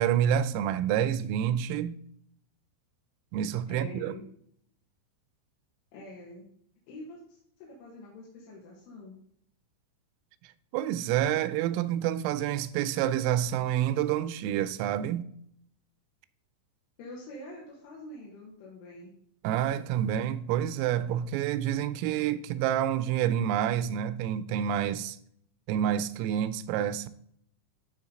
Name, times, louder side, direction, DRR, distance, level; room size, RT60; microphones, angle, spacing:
voice 1, 0.0-2.0 3.3-4.2 10.7-15.3 19.4-25.2 25.7-27.1, right 10 dB, 85° right, 3.2 m, -28 dB
voice 2, 3.7-4.2 5.9-6.5 6.9-9.2 17.0-19.1, left 1 dB, 75° left, 4.2 m, -45 dB
12.5 x 4.7 x 3.8 m
omnidirectional pair, 5.9 m